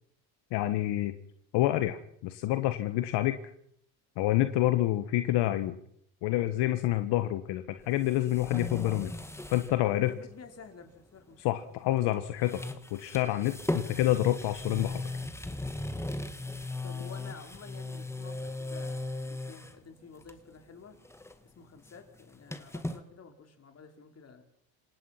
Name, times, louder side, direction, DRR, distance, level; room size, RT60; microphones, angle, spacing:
voice 1, 0.5-1.1 1.5-3.4 4.2-5.7 6.2-9.1 9.5-10.1 11.4-12.6 12.9-15.0, left 15 dB, 70° left, 10 dB, 1.5 m, -28 dB
sound 1, 7.8-9.8 10.1-10.2 11.9-12.1 12.4-19.8 20.2-20.6 20.9-23.0, left 2 dB, 5° left, 1.9 m, -37 dB
voice 2, 9.8-11.4 16.8-21.0 21.4-24.4, left 5 dB, 35° left, 5 dB, 4.4 m, -50 dB
27.5 x 17.5 x 5.9 m, 0.68 s
supercardioid pair, 105°, 43 cm